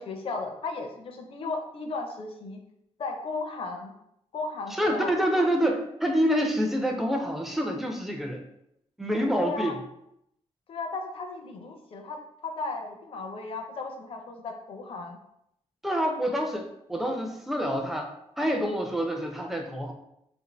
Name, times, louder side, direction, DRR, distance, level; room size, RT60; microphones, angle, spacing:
voice 1, 0.0-2.6 3.0-3.9 4.3-5.4 9.4-9.7 10.7-15.2, left 3 dB, 50° left, 3 dB, 0.5 m, -35 dB
voice 2, 4.8-8.4 9.0-9.7 15.8-19.9, equal, ahead, 2 dB, 0.4 m, -27 dB
2.6 x 2.5 x 4.1 m, 0.78 s
wide cardioid pair, 165°, 12 cm